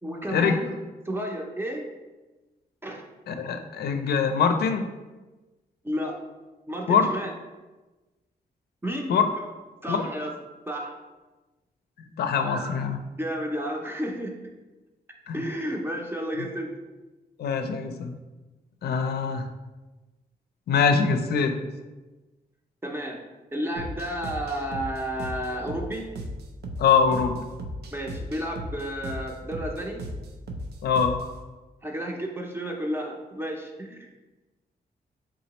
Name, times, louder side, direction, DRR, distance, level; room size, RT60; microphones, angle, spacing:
voice 1, 0.0-0.8 1.0-1.9 2.8-3.0 5.8-6.2 6.7-7.3 8.8-9.5 9.8-10.4 10.7-11.0 12.4-12.8 13.2-14.3 15.3-16.7 22.8-23.2 23.5-26.1 27.2-27.4 27.9-30.0 31.2-31.4 31.8-34.2, equal, 15° right, 0 dB, 0.5 m, -32 dB
voice 2, 3.3-4.8 6.9-7.1 9.1-9.3 9.9-10.1 12.0-13.0 15.3-15.4 17.4-18.1 18.8-19.5 20.7-21.5 26.8-27.4 30.8-31.2, left 6 dB, 80° left, 7 dB, 0.5 m, -23 dB
sound 1, 23.8-31.4, equal, 85° right, 0.5 m, -37 dB
4.0 x 3.7 x 2.9 m, 1.2 s
cardioid pair, 110°, 16 cm